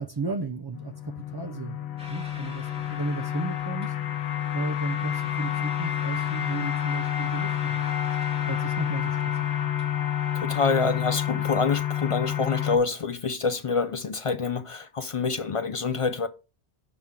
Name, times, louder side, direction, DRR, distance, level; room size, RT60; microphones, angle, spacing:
voice 1, 0.0-1.8 2.1-3.9 4.5-8.1 8.5-9.7, right 4 dB, 40° right, 0.3 m, -35 dB
sound 1, 0.7-12.8, left 10 dB, 75° left, 0.9 m, -29 dB
sound 2, 2.0-10.4, equal, 5° right, 1.8 m, -47 dB
voice 2, 10.4-16.3, left 4 dB, 50° left, 0.4 m, -26 dB
6.9 x 3.5 x 5.7 m
omnidirectional pair, 1.1 m